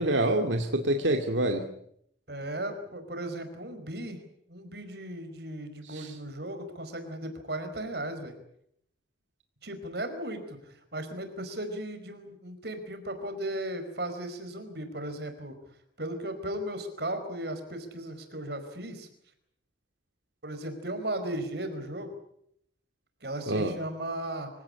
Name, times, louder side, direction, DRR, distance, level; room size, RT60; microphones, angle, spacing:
voice 1, 0.0-1.7 5.8-6.1 23.5-23.7, right 1 dB, 90° right, 4 dB, 2.3 m, -26 dB
voice 2, 2.3-4.2 4.5-8.3 9.6-15.5 16.0-19.1 20.4-22.1 23.2-24.5, right 1 dB, 60° right, 8 dB, 4.9 m, -36 dB
25.5 x 17.0 x 9.8 m, 0.71 s
head